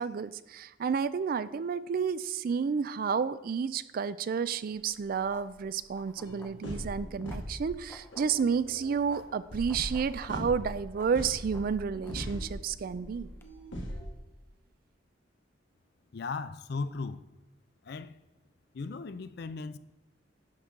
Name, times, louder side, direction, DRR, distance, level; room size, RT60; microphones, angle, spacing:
voice 1, 0.0-13.3, right 6 dB, 50° right, 0.3 m, -31 dB
sound 1, 4.7-13.4, left 1 dB, 10° left, 0.6 m, -52 dB
sound 2, 6.2-14.1, equal, 70° left, 1.8 m, -40 dB
voice 2, 16.1-17.3 17.8-18.1 18.7-19.8, left 4 dB, 55° left, 0.4 m, -37 dB
10.5 x 6.0 x 3.7 m
head